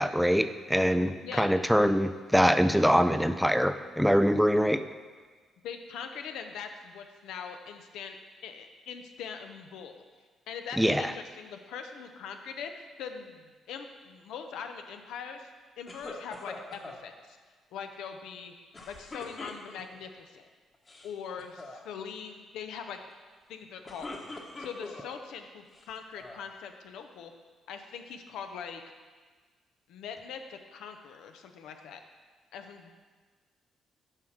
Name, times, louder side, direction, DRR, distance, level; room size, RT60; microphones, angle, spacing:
voice 1, 0.0-4.8 10.8-11.1, equal, ahead, 10 dB, 0.4 m, -24 dB
voice 2, 5.6-8.2 8.4-10.0 10.5-15.5 15.8-17.4 17.7-18.5 18.9-20.5 21.0-23.0 23.5-27.3 27.7-28.8 29.9-32.0 32.5-32.9, left 7 dB, 85° left, 6 dB, 0.7 m, -42 dB
sound 1, 15.9-17.0 18.7-20.0 20.7-21.1 21.4-21.8 23.6-25.1 25.7-26.5, left 2 dB, 30° left, 1.2 m, -43 dB
7.4 x 5.0 x 6.0 m, 1.5 s
cardioid pair, 90°, 0 cm